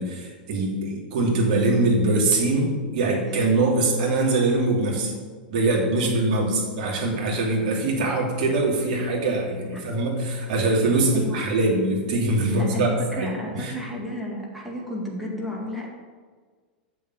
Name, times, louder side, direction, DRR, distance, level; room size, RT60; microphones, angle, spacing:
voice 1, 0.0-5.1 5.5-13.7, right 2 dB, 55° right, -1 dB, 2.8 m, -23 dB
voice 2, 12.5-15.9, left 1 dB, ahead, -3 dB, 2.2 m, -32 dB
6.9 x 6.6 x 7.2 m, 1.5 s
figure-of-eight pair, 95°, 5 cm